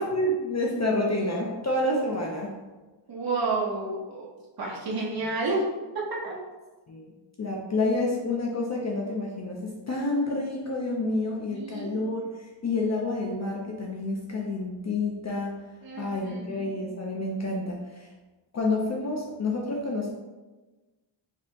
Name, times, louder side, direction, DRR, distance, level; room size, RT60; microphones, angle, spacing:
voice 1, 0.0-2.5 6.9-7.1 7.4-15.6 16.0-18.1 18.5-20.1, left 2 dB, 35° left, -2 dB, 0.5 m, -29 dB
voice 2, 3.1-4.3 4.6-5.7 6.1-6.4 11.5-11.9 15.8-16.7, right 3 dB, 50° right, -4 dB, 1.0 m, -30 dB
4.9 x 2.8 x 3.4 m, 1.2 s
wide cardioid pair, 170°, 47 cm